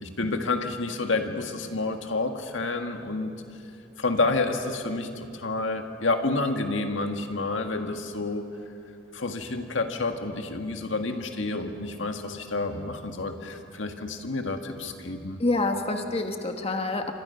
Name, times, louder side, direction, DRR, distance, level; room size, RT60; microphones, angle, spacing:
voice 1, 0.0-3.3 4.0-8.5 9.1-15.4, left 3 dB, 80° left, 5 dB, 1.8 m, -29 dB
voice 2, 15.4-17.1, left 2 dB, 30° left, 4 dB, 1.3 m, -27 dB
28.5 x 25.5 x 5.8 m, 2.5 s
head